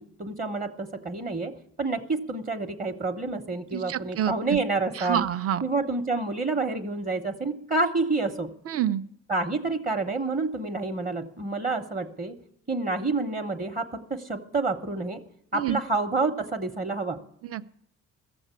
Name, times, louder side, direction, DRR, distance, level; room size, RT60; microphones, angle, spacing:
voice 1, 0.0-1.5 1.8-5.2 5.6-8.5 9.3-12.4 12.7-15.2 15.5-17.2, right 3 dB, 30° right, 3 dB, 1.0 m, -28 dB
voice 2, 3.7-4.6 4.9-5.6 8.7-9.0 15.5-15.8 17.4-17.7, right 10 dB, 50° right, 12 dB, 0.6 m, -28 dB
15.5 x 7.1 x 8.3 m, 0.75 s
cardioid pair, 90°, 30 cm